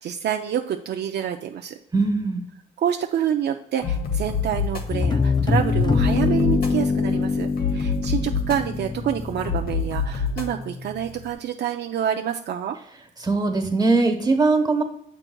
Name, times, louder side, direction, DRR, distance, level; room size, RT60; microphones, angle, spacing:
voice 1, 0.0-1.7 2.8-12.8, right 9 dB, 60° right, 4 dB, 0.5 m, -27 dB
voice 2, 1.9-2.4 13.2-14.8, right 3 dB, 20° right, 4 dB, 1.2 m, -20 dB
sound 1, 3.8-11.3, left 5 dB, 50° left, 1.0 m, -28 dB
sound 2, 4.9-9.7, left 4 dB, 20° left, 0.4 m, -23 dB
7.6 x 5.9 x 2.3 m, 0.74 s
cardioid pair, 90°, 20 cm